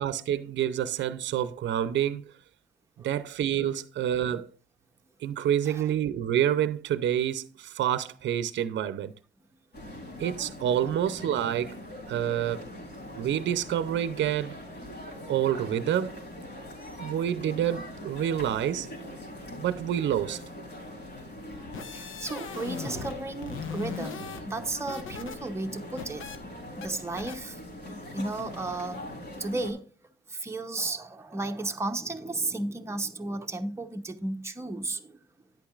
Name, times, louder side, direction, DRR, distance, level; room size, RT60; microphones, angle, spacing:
voice 1, 0.0-2.3 3.0-4.5 5.2-9.1 10.2-11.8 12.1-12.6 13.2-14.6 15.3-16.2 17.0-18.9 19.6-20.4, right 10 dB, 65° right, 0.6 m, -28 dB
sound 1, 9.7-29.7, left 1 dB, 55° left, 3.7 m, -42 dB
sound 2, 21.5-23.2 23.4-25.4 25.7-26.4 26.8-26.9 27.2-27.4, left 6 dB, 75° left, 1.1 m, -39 dB
voice 2, 21.9-26.5 26.7-27.6 28.1-29.1 29.4-29.9 30.3-35.2, right 2 dB, 15° right, 0.8 m, -34 dB
10.5 x 8.5 x 2.4 m
cardioid pair, 90°, 20 cm